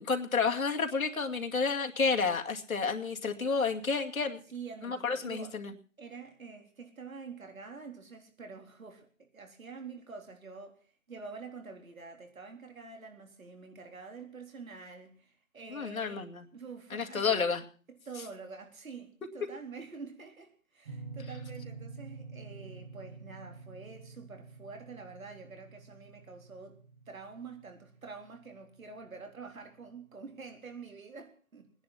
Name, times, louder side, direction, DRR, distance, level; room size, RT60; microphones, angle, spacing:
voice 1, 0.0-4.4 4.8-5.7 15.7-16.5 16.9-17.6, left 5 dB, 80° left, 2.3 m, -30 dB
voice 2, 4.5-5.6 6.0-17.3 17.9-26.8 27.1-31.7, right 4 dB, 75° right, 4.0 m, -47 dB
sound 1, 20.8-29.6, right 4 dB, 35° right, 1.8 m, -48 dB
21.0 x 10.5 x 5.8 m
hypercardioid pair, 165°, 41 cm